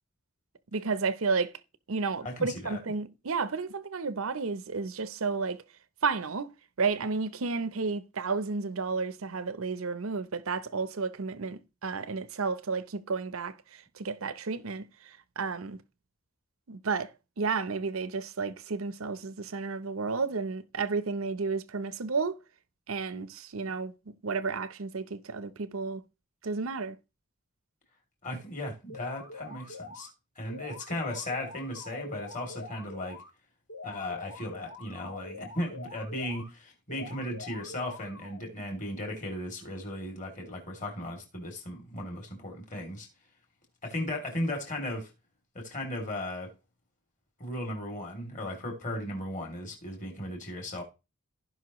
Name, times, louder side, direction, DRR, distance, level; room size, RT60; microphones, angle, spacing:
voice 1, 0.7-1.5 1.9-5.6 6.0-6.5 6.8-15.8 16.7-17.1 17.4-22.4 22.9-26.0 26.4-27.0, right 4 dB, 80° right, 0.7 m, -32 dB
voice 2, 2.2-2.8 28.2-30.1 30.4-33.2 33.8-43.1 43.8-45.1 45.5-46.5 47.4-50.8, left 1 dB, 35° left, 2.9 m, -36 dB
sound 1, 28.9-30.1 30.5-33.3 33.7-36.5 36.9-38.5, left 3 dB, 90° left, 1.8 m, -45 dB
16.0 x 5.6 x 3.1 m
head